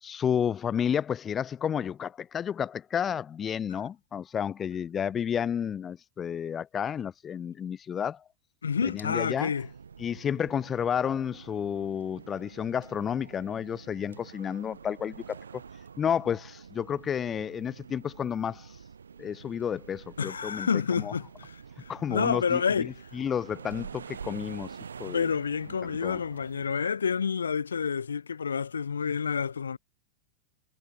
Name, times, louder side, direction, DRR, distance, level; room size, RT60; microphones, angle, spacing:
voice 1, 0.0-8.2 8.8-9.5 10.0-15.6 16.0-18.7 19.2-20.7 21.0-21.1 21.9-25.3 25.8-26.2, left 8 dB, 25° left, 2.2 m, -31 dB
voice 2, 8.6-9.7 20.2-22.9 25.0-29.8, left 6 dB, 70° left, 4.1 m, -29 dB
sound 1, 9.5-26.7, right 6 dB, 70° right, 3.0 m, -47 dB
figure-of-eight pair, 90°, 0 cm